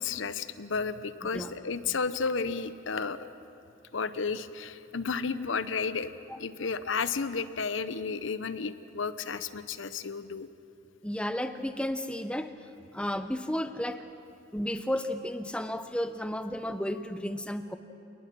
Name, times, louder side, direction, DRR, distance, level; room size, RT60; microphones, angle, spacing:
voice 1, 0.0-3.3 3.9-6.1 6.4-10.5, left 5 dB, 80° left, 13 dB, 0.8 m, -32 dB
voice 2, 11.0-12.5 12.9-14.0 14.5-17.8, left 1 dB, 5° left, 9 dB, 0.8 m, -33 dB
28.0 x 19.5 x 6.2 m, 2.7 s
head